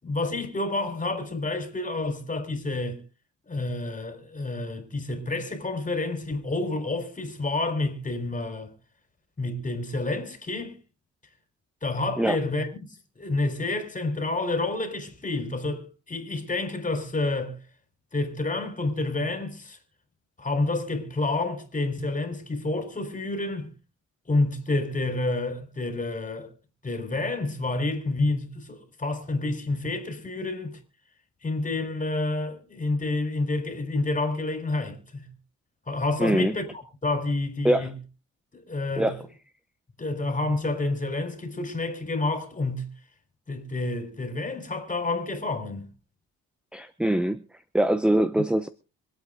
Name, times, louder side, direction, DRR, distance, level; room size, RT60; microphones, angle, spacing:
voice 1, 0.0-3.0 3.5-8.7 9.4-10.7 11.8-12.7 13.2-17.6 18.1-19.8 20.4-23.7 24.3-26.5 26.8-30.8 31.4-35.3 35.9-36.6 37.0-37.9 38.5-39.2 40.0-42.9 43.5-45.9, left 2 dB, 25° left, 4.2 m, -29 dB
voice 2, 36.2-36.5 37.6-37.9 39.0-39.2 46.7-47.4 47.7-48.7, right 1 dB, 5° right, 0.8 m, -23 dB
25.0 x 8.7 x 3.7 m
cardioid pair, 90°, 30 cm